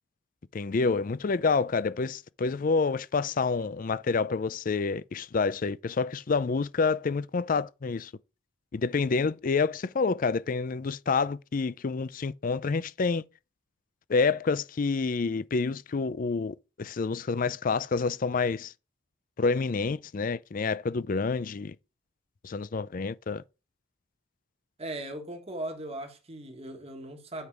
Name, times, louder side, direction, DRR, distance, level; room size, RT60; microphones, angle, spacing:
voice 1, 0.5-8.1 8.7-13.2 14.1-18.7 19.4-21.8 22.4-23.4, left 4 dB, 40° left, 0.4 m, -28 dB
voice 2, 24.8-27.5, right 1 dB, 30° right, 1.5 m, -38 dB
8.1 x 5.2 x 4.6 m
head